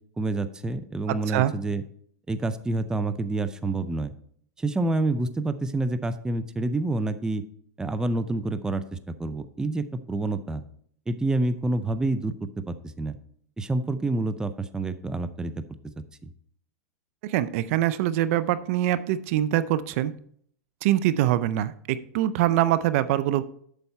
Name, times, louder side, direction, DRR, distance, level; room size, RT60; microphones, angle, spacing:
voice 1, 0.2-1.8 2.3-4.1 4.6-7.4 7.8-10.6 11.1-13.1 13.6-15.6, right 2 dB, 10° right, 10 dB, 0.5 m, -28 dB
voice 2, 1.1-1.5 17.2-20.1 20.8-23.4, right 13 dB, 55° right, 15 dB, 0.5 m, -24 dB
8.0 x 6.9 x 4.2 m, 0.63 s
hypercardioid pair, 130°, 9 cm